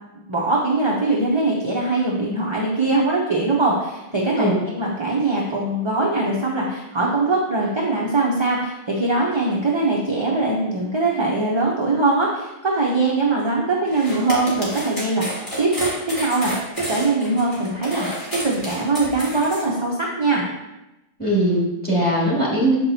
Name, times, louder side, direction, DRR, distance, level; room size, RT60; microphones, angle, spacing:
voice 1, 0.3-20.5, right 2 dB, 30° right, -3 dB, 0.8 m, -22 dB
sound 1, 13.9-19.6, equal, 35° left, 2.1 m, -31 dB
voice 2, 21.2-22.8, right 1 dB, 10° left, -7 dB, 2.1 m, -20 dB
6.9 x 5.9 x 2.8 m, 0.98 s
omnidirectional pair, 1.0 m